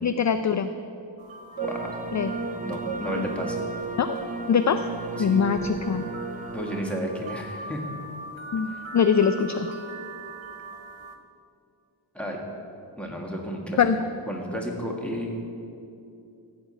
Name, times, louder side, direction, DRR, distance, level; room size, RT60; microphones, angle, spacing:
voice 1, 0.0-0.7 2.1-2.3 3.2-3.3 4.0-4.1 4.5-4.8 5.2-6.0 8.5-9.7 13.8-14.0, left 7 dB, 40° left, 10 dB, 0.4 m, -22 dB
sound 1, 1.2-11.2, right 3 dB, 85° right, 1.4 m, -41 dB
sound 2, 1.6-6.8, right 3 dB, 20° right, 0.6 m, -34 dB
voice 2, 2.6-3.6 5.2-5.4 6.5-7.8 12.1-12.4 13.0-13.8 14.3-15.3, equal, 5° left, 0 dB, 1.7 m, -32 dB
15.0 x 5.2 x 8.8 m, 2.6 s
wide cardioid pair, 140°, 46 cm